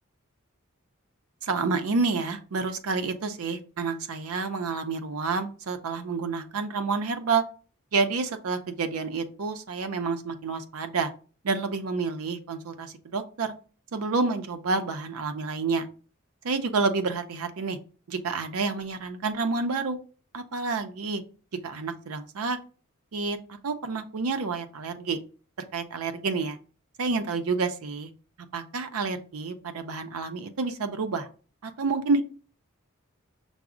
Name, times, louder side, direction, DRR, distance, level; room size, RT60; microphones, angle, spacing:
voice 1, 1.4-7.4 7.9-11.1 11.4-13.5 13.9-15.9 16.4-17.8 18.1-20.0 20.3-21.2 21.6-22.6 23.1-25.2 25.7-26.6 27.0-28.1 28.5-31.3 31.6-32.2, right 4 dB, 80° right, 8 dB, 0.5 m, -29 dB
5.9 x 2.0 x 3.6 m, 0.38 s
head